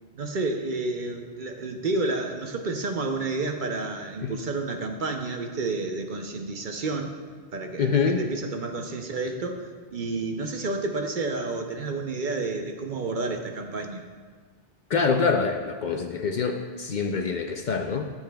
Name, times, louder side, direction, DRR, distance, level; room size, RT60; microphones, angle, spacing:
voice 1, 0.1-7.1 7.5-14.0, right 3 dB, 55° right, 4 dB, 0.8 m, -30 dB
voice 2, 7.8-8.2 14.9-18.0, left 5 dB, 55° left, 4 dB, 0.6 m, -25 dB
13.5 x 7.3 x 2.2 m, 1.5 s
omnidirectional pair, 1.1 m